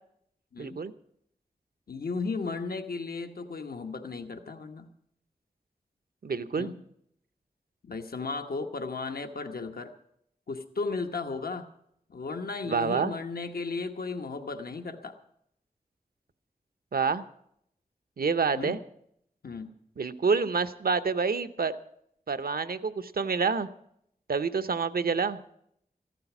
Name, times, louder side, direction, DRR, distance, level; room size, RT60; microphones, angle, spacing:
voice 1, 0.6-0.9 6.2-6.7 12.6-13.1 16.9-17.2 18.2-18.8 20.0-21.8 22.3-23.7 24.3-25.4, right 5 dB, 80° right, 13 dB, 0.8 m, -27 dB
voice 2, 1.9-4.9 6.6-6.8 7.8-9.9 10.5-11.7 12.1-15.2 18.5-18.8 19.4-19.7, left 4 dB, 85° left, 6 dB, 1.1 m, -35 dB
14.5 x 12.5 x 6.0 m, 0.72 s
wide cardioid pair, 65°, 15 cm